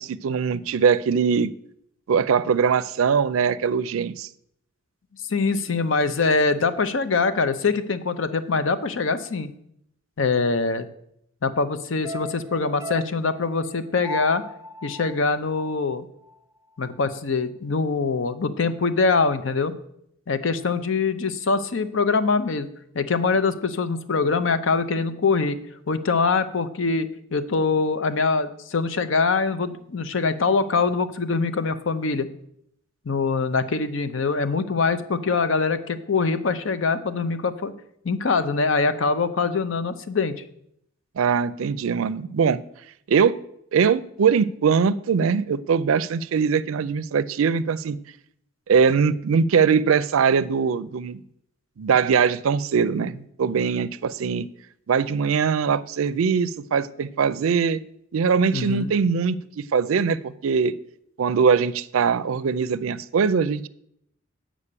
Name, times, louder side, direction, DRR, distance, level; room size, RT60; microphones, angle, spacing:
voice 1, 0.0-1.5 2.1-4.3 41.2-42.6 43.1-43.4 43.7-48.0 48.7-51.2 51.8-54.5 54.9-57.8 58.1-60.7 61.2-63.7, right 6 dB, 85° right, 16 dB, 0.4 m, -21 dB
voice 2, 5.3-9.5 10.2-10.9 11.4-14.4 14.8-16.1 16.8-19.8 20.3-22.7 22.9-25.6 25.9-32.3 33.1-37.7 38.0-40.3 58.5-58.9, left 4 dB, 65° left, 12 dB, 0.6 m, -23 dB
sound 1, 12.0-16.4 16.7-16.8, equal, 15° right, 0.4 m, -37 dB
8.6 x 5.1 x 6.7 m, 0.74 s
head